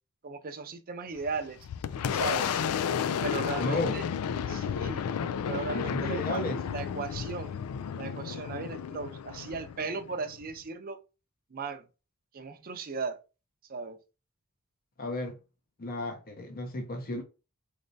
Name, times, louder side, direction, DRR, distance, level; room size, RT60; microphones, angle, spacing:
voice 1, 0.2-1.6 2.1-2.6 3.2-4.0 4.5-5.0 5.5-7.6 8.0-11.0 11.5-11.9 12.3-13.2 13.7-14.0, right 4 dB, 40° right, 0.5 m, -37 dB
Boom, 1.2-10.6, left 7 dB, 90° left, 0.3 m, -32 dB
voice 2, 3.6-3.9 5.7-6.6 15.0-15.4 15.8-17.2, left 2 dB, 45° left, 0.7 m, -33 dB
4.0 x 3.3 x 2.6 m
head